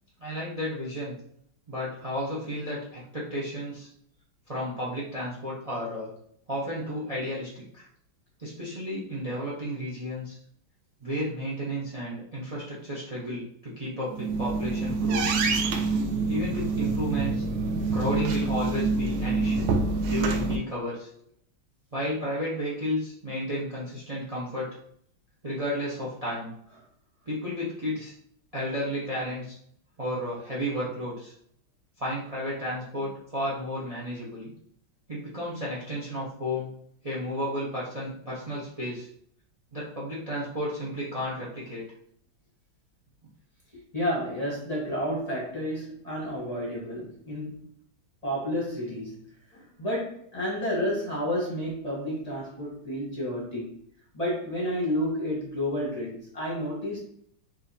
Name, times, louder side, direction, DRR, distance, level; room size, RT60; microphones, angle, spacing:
voice 1, 0.2-1.1 1.7-3.9 4.5-6.1 6.5-7.9 8.4-10.4 11.0-15.4 16.3-17.4 17.9-19.6 20.1-21.1 21.9-24.7 25.4-26.5 27.3-28.1 28.5-29.6 30.0-31.3 32.0-34.5 35.1-36.7 37.0-39.1 39.7-41.8, equal, 70° right, -6 dB, 0.3 m, -32 dB
sound 1, 14.1-20.6, right 3 dB, 90° right, 1.5 m, -26 dB
voice 2, 43.9-47.6 48.2-49.2 49.5-53.7 54.1-57.0, equal, 30° left, -5 dB, 0.8 m, -31 dB
4.9 x 2.8 x 2.7 m, 0.66 s
omnidirectional pair, 2.3 m